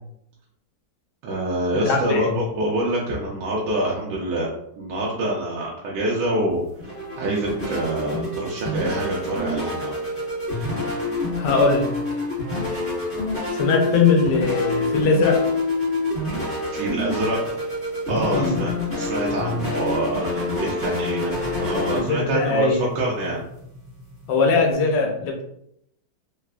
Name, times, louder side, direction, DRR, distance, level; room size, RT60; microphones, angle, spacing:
voice 1, 1.2-4.5 4.8-9.9 16.7-17.6 18.1-23.4, right 1 dB, 90° right, -4 dB, 1.3 m, -26 dB
voice 2, 1.7-2.4 11.4-11.9 13.5-15.4 18.3-18.5 21.9-22.9 24.3-25.4, left 4 dB, 90° left, 2 dB, 1.3 m, -20 dB
sound 1, 6.5-24.7, left 2 dB, 10° left, 1.1 m, -27 dB
3.7 x 2.4 x 2.2 m, 0.74 s
omnidirectional pair, 1.8 m